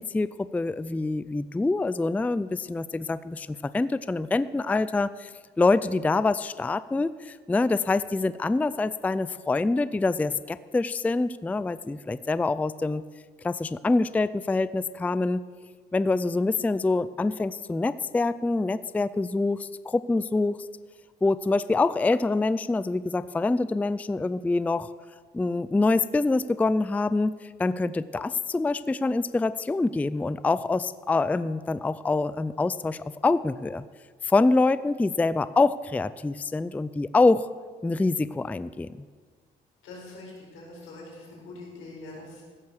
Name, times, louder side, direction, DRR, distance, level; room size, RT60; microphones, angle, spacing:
voice 1, 0.0-5.3 5.6-13.0 13.4-15.4 15.9-20.6 21.2-24.9 25.3-33.8 34.2-37.5 37.8-39.0, left 3 dB, 10° left, 15 dB, 0.3 m, -25 dB
voice 2, 39.8-42.4, left 2 dB, 90° left, -3 dB, 4.7 m, -43 dB
15.5 x 6.4 x 7.0 m, 1.5 s
cardioid pair, 90°, 20 cm